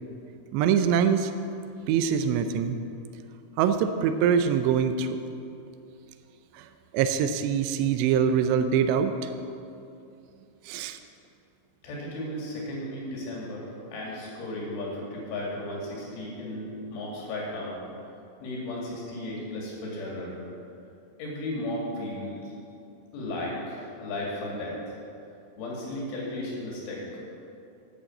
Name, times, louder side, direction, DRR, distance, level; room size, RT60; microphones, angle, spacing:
voice 1, 0.5-1.3 1.9-2.8 3.6-5.2 6.5-6.7 6.9-9.3 10.7-11.0, right 7 dB, 80° right, 8 dB, 2.6 m, -24 dB
voice 2, 11.8-17.7 18.4-20.4 21.2-22.5 23.1-24.9 25.6-27.2, left 1 dB, 80° left, -4 dB, 5.0 m, -35 dB
10.0 x 8.8 x 7.9 m, 2.6 s
omnidirectional pair, 5.5 m